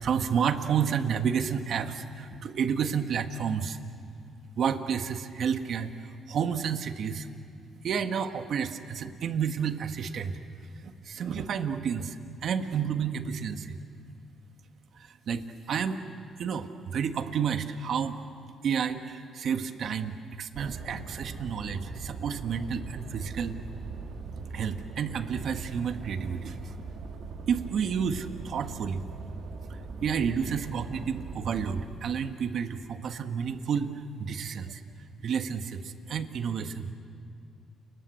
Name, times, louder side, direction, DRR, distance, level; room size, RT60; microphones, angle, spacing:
voice 1, 0.0-3.8 4.6-7.3 7.8-10.4 10.8-13.8 15.3-16.0 16.4-18.2 18.6-23.6 24.5-26.7 27.5-29.1 30.0-33.9 34.2-34.8 35.2-36.9, right 7 dB, 65° right, 8 dB, 1.5 m, -30 dB
sound 1, 20.5-31.9, right 4 dB, 80° right, 3.0 m, -41 dB
30.0 x 21.0 x 8.4 m, 2.4 s
cardioid pair, 90°, 0 cm